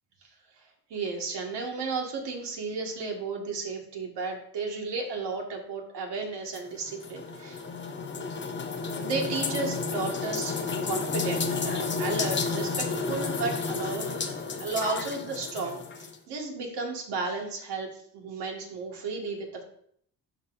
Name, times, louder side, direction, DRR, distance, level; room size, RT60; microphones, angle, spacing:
voice 1, 0.9-7.6 9.0-10.6 10.8-14.2 14.6-19.6, right 4 dB, 75° right, 1 dB, 1.9 m, -33 dB
sound 1, 6.5-16.2, left 4 dB, 25° left, 0.8 m, -31 dB
12.0 x 4.0 x 2.6 m, 0.64 s
cardioid pair, 90°, 41 cm